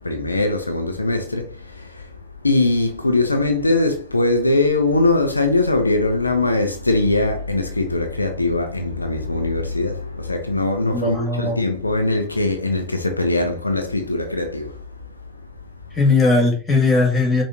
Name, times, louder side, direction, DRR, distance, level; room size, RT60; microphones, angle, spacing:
voice 1, 0.0-2.1 2.4-14.9, left 2 dB, 80° left, 0.5 m, -21 dB
voice 2, 10.9-11.6 15.9-17.4, left 3 dB, 15° left, 1.8 m, -18 dB
5.5 x 2.5 x 2.8 m
figure-of-eight pair, 90°, 0 cm